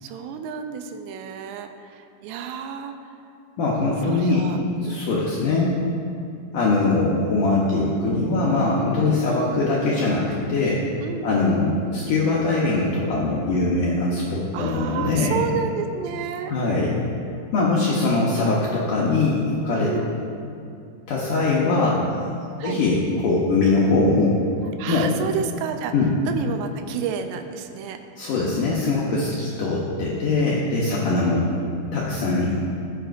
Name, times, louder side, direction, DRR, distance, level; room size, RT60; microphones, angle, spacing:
voice 1, 0.0-3.2 4.1-5.0 9.3-9.5 11.0-11.4 14.5-16.5 19.8-20.2 22.6-22.8 24.8-25.9 26.3-28.0 31.4-31.8, right 7 dB, 85° right, 6 dB, 2.7 m, -31 dB
voice 2, 3.6-4.5 4.9-5.8 6.5-10.8 11.2-15.4 16.5-17.0 17.5-19.9 21.1-22.0 22.6-24.4 24.9-25.1 25.9-26.1 28.2-31.4 31.9-32.6, left 3 dB, 75° left, -5 dB, 2.0 m, -22 dB
14.5 x 7.8 x 2.6 m, 2.5 s
omnidirectional pair, 4.8 m